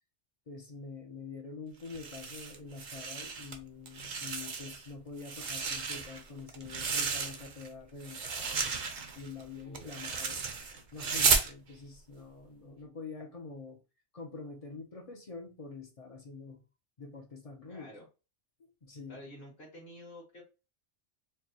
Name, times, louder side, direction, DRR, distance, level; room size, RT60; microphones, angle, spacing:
voice 1, 0.5-8.7 9.1-13.8 14.1-16.6 17.0-17.9 18.6-19.2, left 4 dB, 40° left, 0.6 m, -46 dB
sound 1, 1.9-3.6 3.9-4.9 5.2-7.7 8.0-11.5, right 5 dB, 50° right, 0.6 m, -33 dB
voice 2, 9.6-10.1 17.7-18.1 19.1-20.4, equal, 60° left, 1.5 m, -50 dB
4.6 x 2.1 x 2.8 m
omnidirectional pair, 1.2 m